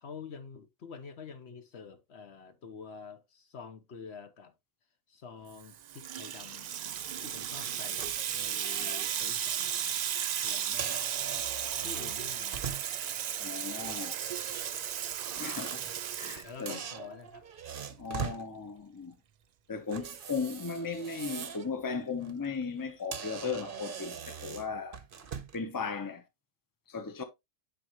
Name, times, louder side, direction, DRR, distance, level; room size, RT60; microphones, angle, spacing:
voice 1, 0.0-4.5 5.1-6.7 7.2-9.9 10.4-11.5 11.8-12.6 16.4-17.5, left 5 dB, 60° left, 1.1 m, -48 dB
Water tap faucet / Sink (filling or washing), 5.6-17.0, right 9 dB, 80° right, 0.3 m, -35 dB
sound 1, 7.6-9.1 9.6-9.8 10.6-13.1 13.8-16.4 16.7-18.4 19.9-21.7 22.1-22.3 22.8-22.9 23.1-25.6, right 7 dB, 50° right, 0.9 m, -42 dB
voice 2, 13.4-14.2 15.4-16.8 18.0-19.2 19.7-25.0 25.5-26.2 26.9-27.2, left 5 dB, 20° left, 0.8 m, -37 dB
9.2 x 4.6 x 3.0 m
omnidirectional pair, 1.3 m